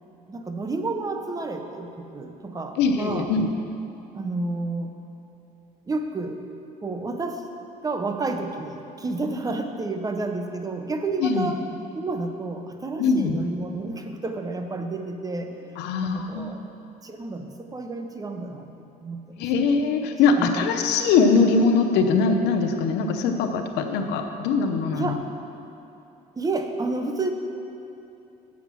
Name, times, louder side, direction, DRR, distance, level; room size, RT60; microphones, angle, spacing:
voice 1, 0.3-3.3 4.1-4.9 5.9-6.4 6.8-7.5 7.8-11.6 11.9-16.6 17.0-18.7 19.0-19.5 20.4-20.6 24.9-25.2 26.4-27.3, right 3 dB, 20° right, 6 dB, 0.8 m, -30 dB
voice 2, 2.8-3.5 11.2-11.5 13.0-13.4 15.8-16.7 19.4-25.1, left 4 dB, 90° left, 5 dB, 0.8 m, -22 dB
8.2 x 7.2 x 6.1 m, 2.8 s
cardioid pair, 110°, 17 cm